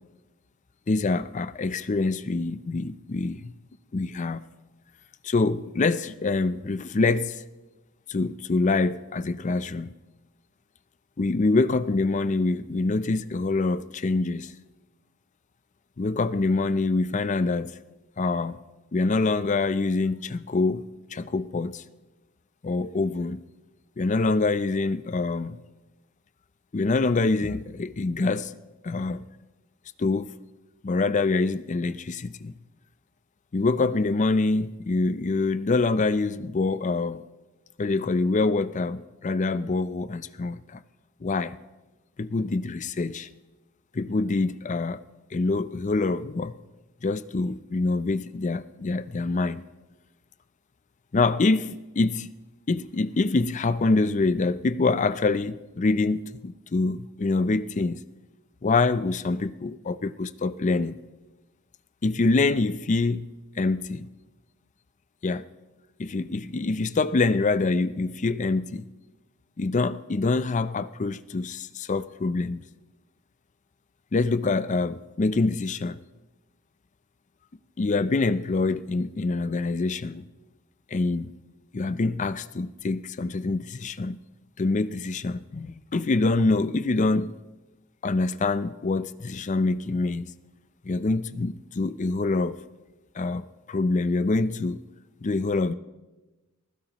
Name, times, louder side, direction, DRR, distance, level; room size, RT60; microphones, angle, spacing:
voice 1, 0.9-3.5 3.9-4.4 5.2-7.4 8.1-9.9 11.2-14.5 16.0-17.7 18.2-18.6 18.9-21.8 22.6-23.4 24.0-25.6 26.7-28.6 28.8-29.3 30.0-30.4 30.8-32.6 33.5-37.2 37.8-40.8 41.2-41.6 42.2-43.3 43.9-45.0 45.3-46.5 47.0-49.6 51.1-52.3 52.7-58.0 58.6-60.9 62.0-63.3 63.6-64.1 65.2-65.5 66.0-68.9 69.6-72.7 74.1-76.0 77.8-80.3 80.9-81.3 81.7-84.2 84.6-87.4 88.0-90.3 90.8-92.6 93.2-94.8 95.2-95.7, left 3 dB, 35° left, 0.4 m, -25 dB
28.0 x 15.5 x 3.0 m
head